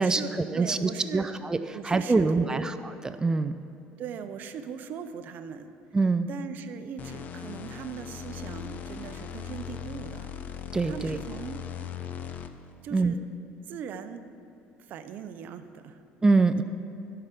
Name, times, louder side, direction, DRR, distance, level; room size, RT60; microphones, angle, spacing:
voice 1, 0.0-1.3 1.7-2.7 4.0-5.7 6.3-10.3 10.8-11.6 12.8-13.2 13.7-14.2 14.8-16.0, right 7 dB, 55° right, 9 dB, 0.6 m, -39 dB
voice 2, 0.5-1.6 1.8-2.7 3.2-3.5 5.9-6.3 10.7-11.2 12.9-13.1 16.2-16.6, right 3 dB, 20° right, 10 dB, 0.4 m, -24 dB
sound 1, 7.0-12.7, left 9 dB, 45° left, 0.6 m, -39 dB
13.0 x 5.8 x 6.8 m, 2.6 s
supercardioid pair, 100°, 4 cm